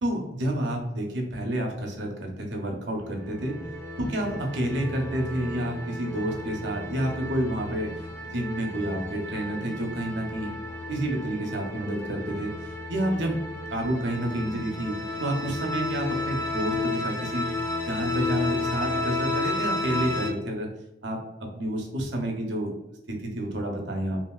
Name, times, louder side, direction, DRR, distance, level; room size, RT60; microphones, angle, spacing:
voice 1, 0.0-3.5 4.0-7.9 8.3-10.5 10.9-12.5 12.9-13.4 13.7-17.5 17.9-20.7 21.0-22.7 23.1-24.2, right 1 dB, 75° right, 2 dB, 0.6 m, -29 dB
sound 1, 2.9-20.3, left 2 dB, 15° left, 0.4 m, -32 dB
2.9 x 2.7 x 2.2 m, 0.88 s
head